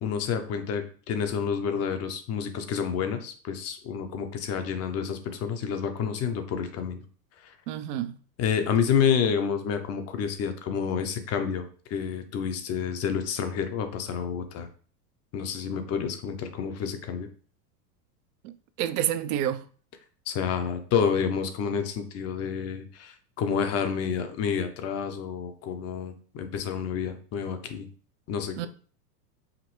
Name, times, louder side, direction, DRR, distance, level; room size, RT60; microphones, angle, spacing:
voice 1, 0.0-7.0 7.4-7.5 8.4-14.7 15.3-17.3 20.3-27.9 28.3-28.7, left 7 dB, 30° left, 0.6 m, -29 dB
voice 2, 7.7-8.2 18.4-19.7 28.6-28.7, right 11 dB, 65° right, 0.6 m, -29 dB
5.0 x 2.6 x 3.0 m
hypercardioid pair, 100°, 50 cm